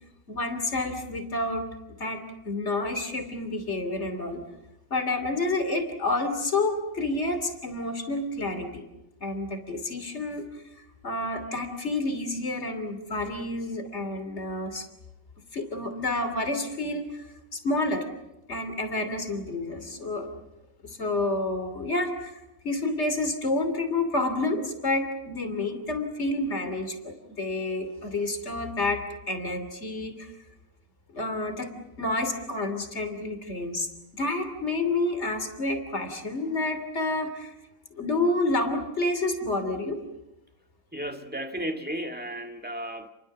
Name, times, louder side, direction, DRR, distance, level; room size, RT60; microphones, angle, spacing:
voice 1, 0.3-1.7 2.0-4.4 4.9-8.8 9.2-10.4 11.0-14.9 15.5-17.1 17.5-18.1 18.5-20.3 20.8-30.3 31.1-37.5 37.9-40.0, left 2 dB, 40° left, 3.3 m, -29 dB
voice 2, 40.9-43.1, right 1 dB, 5° right, 1.7 m, -34 dB
29.5 x 23.0 x 7.3 m
omnidirectional pair, 1.8 m